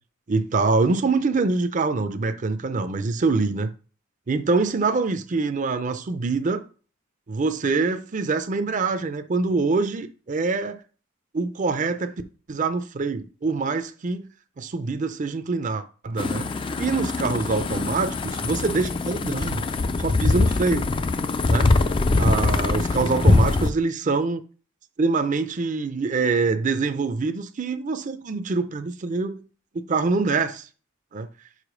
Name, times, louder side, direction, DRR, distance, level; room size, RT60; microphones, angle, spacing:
voice 1, 0.3-3.7 4.3-6.6 7.3-10.8 11.3-12.1 12.5-14.3 14.6-16.5 16.8-19.6 20.0-20.9 21.5-21.7 22.2-24.4 25.0-29.4 29.7-30.7 31.1-31.3, right 4 dB, 40° right, 0.5 m, -25 dB
sound 1, 16.2-23.7, left 3 dB, 25° left, 0.3 m, -23 dB
4.9 x 4.6 x 4.9 m
head